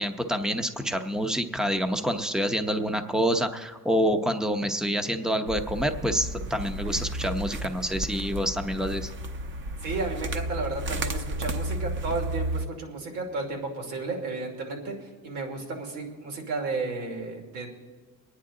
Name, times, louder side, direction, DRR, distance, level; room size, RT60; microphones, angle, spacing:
voice 1, 0.0-9.1, equal, ahead, 7 dB, 0.7 m, -27 dB
sound 1, 5.5-12.7, right 1 dB, 40° right, 0.9 m, -33 dB
voice 2, 9.8-17.7, right 3 dB, 90° right, 1 dB, 2.8 m, -33 dB
24.5 x 9.7 x 3.8 m, 1.4 s
cardioid pair, 135°, 30 cm